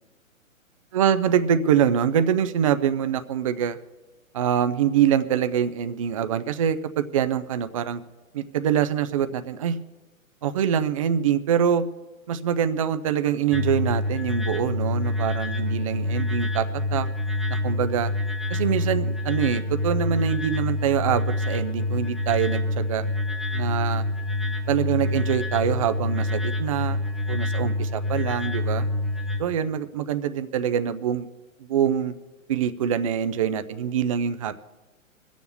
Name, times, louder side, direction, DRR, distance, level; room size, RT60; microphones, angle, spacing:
voice 1, 0.9-3.8 4.3-8.0 8.3-9.8 10.4-11.9 12.3-17.1 17.6-18.1 18.5-23.1 23.5-24.0 24.7-27.0 27.3-28.9 29.4-31.3 31.6-32.1 32.5-34.6, right 9 dB, 25° right, 10 dB, 0.4 m, -24 dB
sound 1, 13.5-29.4, left 1 dB, ahead, 0.8 m, -27 dB
21.5 x 7.2 x 6.9 m, 1.1 s
hypercardioid pair, 130°, 41 cm